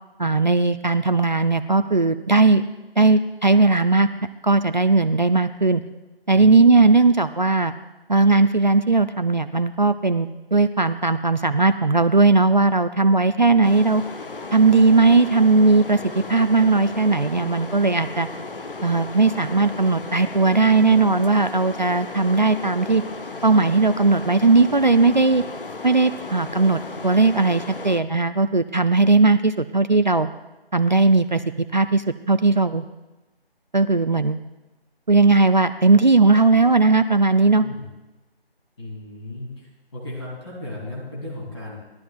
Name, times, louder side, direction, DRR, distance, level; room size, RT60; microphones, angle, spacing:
voice 1, 0.2-2.6 3.0-4.1 4.4-5.8 6.3-7.7 8.1-14.0 14.5-18.3 18.8-23.0 23.4-25.4 25.8-30.3 30.7-31.4 31.7-32.8 33.7-34.4 35.1-37.6, right 3 dB, 50° right, 11 dB, 0.4 m, -18 dB
sound 1, 13.6-28.0, left 3 dB, 60° left, 0.7 m, -35 dB
voice 2, 37.6-37.9 38.8-41.8, left 1 dB, 25° left, -6 dB, 2.8 m, -35 dB
19.0 x 12.0 x 2.4 m, 1.1 s
figure-of-eight pair, 160°, 31 cm